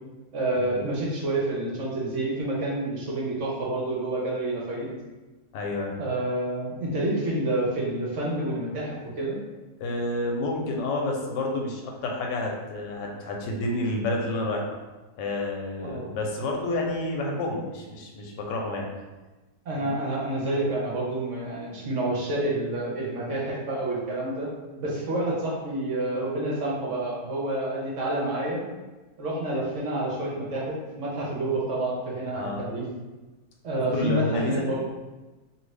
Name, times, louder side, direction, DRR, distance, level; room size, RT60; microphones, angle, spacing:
voice 1, 0.3-4.9 6.0-9.4 15.8-16.1 19.7-24.5 24.8-28.6 29.2-32.9 33.6-34.8, right 1 dB, 60° right, -4 dB, 0.9 m, -28 dB
voice 2, 5.5-5.9 9.8-14.8 15.2-18.9 19.8-19.9 32.3-32.6 33.9-34.6, left 1 dB, 90° left, 0 dB, 1.3 m, -29 dB
2.7 x 2.7 x 3.2 m, 1.2 s
omnidirectional pair, 1.8 m